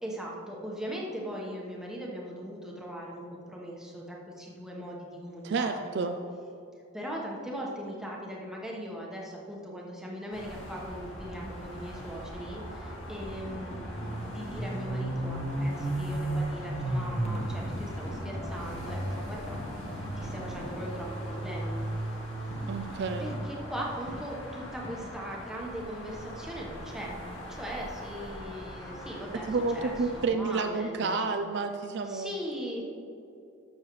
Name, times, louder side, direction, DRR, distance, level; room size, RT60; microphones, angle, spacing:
voice 1, 0.0-6.0 6.9-12.6 13.1-19.6 20.2-21.8 23.2-27.2 27.6-29.5 29.7-31.3 32.0-32.8, equal, 5° right, -3 dB, 1.1 m, -39 dB
voice 2, 5.4-6.2 22.7-23.3 29.5-32.3, right 4 dB, 55° right, 6 dB, 0.4 m, -30 dB
sound 1, 10.3-30.3, right 1 dB, 65° left, 2.0 m, -37 dB
sound 2, 13.1-16.0 17.2-21.0 22.5-25.5, left 1 dB, 30° left, 1.0 m, -44 dB
12.5 x 6.5 x 3.2 m, 2.6 s
head